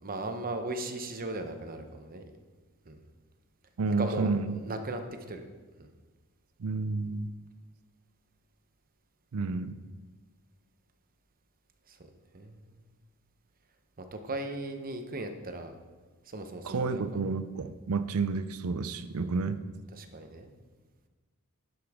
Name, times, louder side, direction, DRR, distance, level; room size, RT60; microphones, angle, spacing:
voice 1, 0.0-2.2 2.9-3.0 4.0-5.0 5.3-5.4 5.8-5.9 11.9-12.8 14.0-15.7 16.3-17.0 19.3-19.4 19.9-20.5, right 2 dB, 40° right, 6 dB, 0.9 m, -37 dB
voice 2, 3.8-4.6 6.6-7.3 9.3-9.8 16.6-19.6, right 4 dB, 70° right, 11 dB, 0.5 m, -30 dB
11.0 x 8.2 x 3.6 m, 1.3 s
head